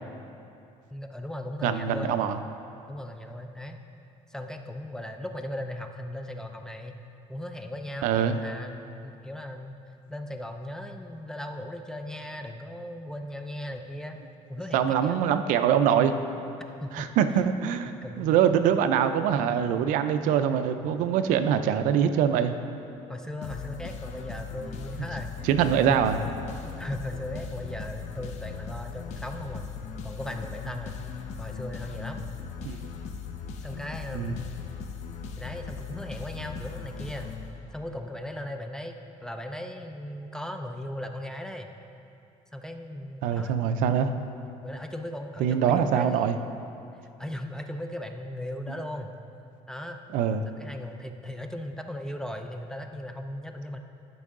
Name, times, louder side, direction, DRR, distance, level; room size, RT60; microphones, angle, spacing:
voice 1, 0.9-2.1 2.9-3.8 4.3-7.0 7.3-9.8 10.1-14.2 14.5-15.5 16.8-17.1 18.0-18.4 20.7-21.0 23.1-26.0 26.6-29.7 30.0-31.0 31.4-32.2 33.6-34.5 35.4-37.3 37.7-41.7 42.5-43.6 44.6-46.5 47.2-49.2 49.7-50.0 50.5-53.8, left 1 dB, 5° left, 5 dB, 0.4 m, -37 dB
voice 2, 1.6-2.4 8.0-8.4 14.7-16.1 16.9-17.9 18.2-22.5 25.4-26.2 32.6-32.9 34.1-34.4 43.2-44.1 45.4-46.4 50.1-50.4, right 8 dB, 75° right, 9 dB, 0.5 m, -24 dB
sound 1, 23.4-38.0, left 6 dB, 60° left, 0.7 m, -39 dB
12.5 x 5.4 x 3.7 m, 2.7 s
cardioid pair, 135°, 13 cm